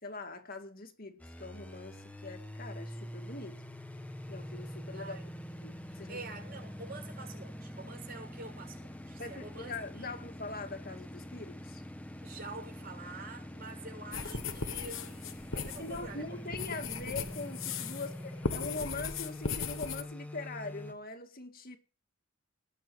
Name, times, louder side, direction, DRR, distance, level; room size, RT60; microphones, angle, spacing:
voice 1, 0.0-3.6 4.3-5.2 5.6-6.2 9.2-11.8 15.5-21.8, left 3 dB, 40° left, 2.2 m, -42 dB
sound 1, 1.2-20.9, equal, 5° left, 1.3 m, -45 dB
voice 2, 4.9-5.4 5.9-10.1 12.2-16.4 18.0-18.3, right 3 dB, 45° right, 6.8 m, -47 dB
sound 2, 14.1-18.1 18.4-20.0, left 5 dB, 65° left, 1.3 m, -37 dB
19.0 x 7.2 x 6.3 m
head